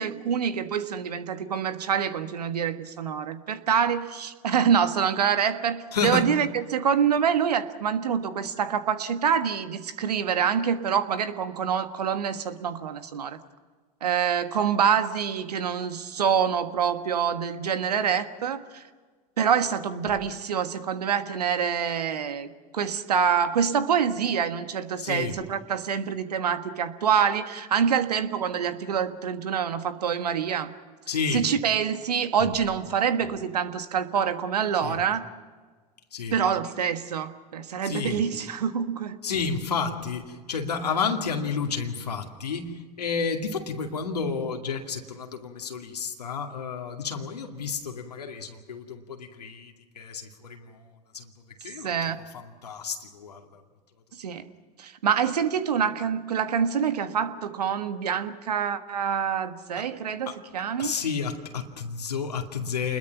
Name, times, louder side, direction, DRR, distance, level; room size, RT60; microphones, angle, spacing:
voice 1, 0.0-13.4 14.0-18.8 19.4-30.7 31.3-35.3 36.3-39.2 51.8-52.2 54.2-54.5 54.8-60.9, right 7 dB, 85° right, 10 dB, 1.5 m, -26 dB
voice 2, 5.9-6.4 25.0-25.4 31.1-31.5 34.8-35.0 36.1-36.4 37.8-38.2 39.2-51.3 51.6-53.6 59.8-59.9 60.3-60.4 60.8-63.0, left 5 dB, 90° left, 3 dB, 2.4 m, -31 dB
28.5 x 21.5 x 6.0 m, 1.4 s
hypercardioid pair, 85°, 20 cm